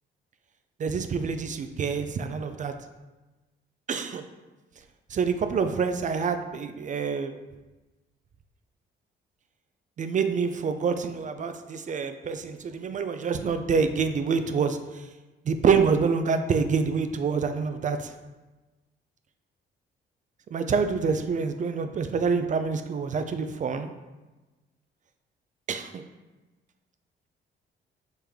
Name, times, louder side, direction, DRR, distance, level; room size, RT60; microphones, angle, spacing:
voice 1, 0.8-2.7 3.9-4.2 5.1-7.3 10.0-15.0 15.5-18.1 20.5-23.9 25.7-26.0, right 5 dB, 40° right, 8 dB, 0.4 m, -26 dB
4.4 x 3.4 x 3.5 m, 1.1 s
cardioid pair, 90°, 20 cm